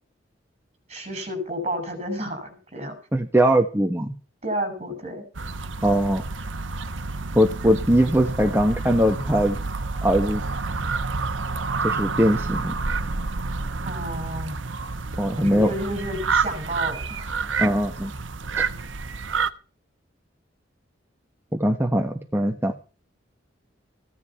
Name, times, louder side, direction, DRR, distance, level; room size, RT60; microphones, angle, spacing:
voice 1, 0.9-2.9 4.4-5.3 13.8-14.6 15.3-17.5 18.5-18.9, right 1 dB, 35° right, 6 dB, 6.3 m, -31 dB
voice 2, 3.1-4.1 5.8-6.2 7.3-9.6 10.0-10.4 11.8-12.7 15.2-15.7 17.6-18.1 18.6-18.7 21.5-22.8, equal, 10° right, 3 dB, 1.3 m, -21 dB
sound 1, 5.3-19.5, right 4 dB, 90° right, 1.0 m, -29 dB
16.0 x 11.0 x 5.6 m, 0.37 s
head